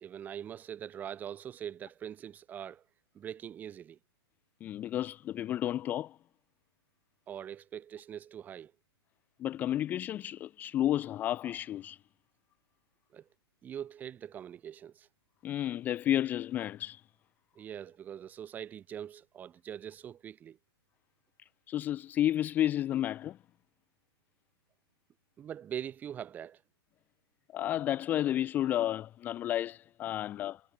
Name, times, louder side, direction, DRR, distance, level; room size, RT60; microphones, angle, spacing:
voice 1, 0.0-2.8 3.1-4.0 7.3-8.7 13.1-13.2 13.6-15.1 17.5-20.6 25.4-26.6, right 9 dB, 10° right, 1.6 m, -42 dB
voice 2, 4.6-6.2 9.4-12.0 15.4-17.0 21.4-23.4 27.5-30.6, left 12 dB, 10° left, 0.6 m, -31 dB
hypercardioid pair, 165°, 14 cm